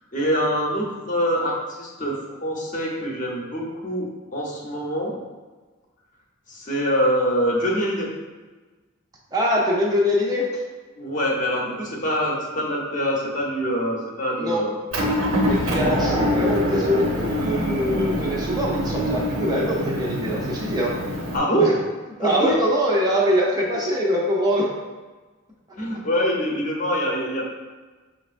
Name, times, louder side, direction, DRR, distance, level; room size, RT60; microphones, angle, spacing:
voice 1, 0.1-5.2 6.5-8.1 11.0-14.7 21.3-21.7 22.2-22.5 25.8-27.5, equal, 35° left, -2 dB, 0.8 m, -24 dB
voice 2, 9.3-10.5 14.4-14.7 15.5-20.9 21.6-21.7 22.2-24.7, equal, 20° right, -3 dB, 0.5 m, -23 dB
Motor vehicle (road) / Engine, 14.9-21.4, equal, 70° right, 0.7 m, -24 dB
5.6 x 3.2 x 2.5 m, 1.3 s
head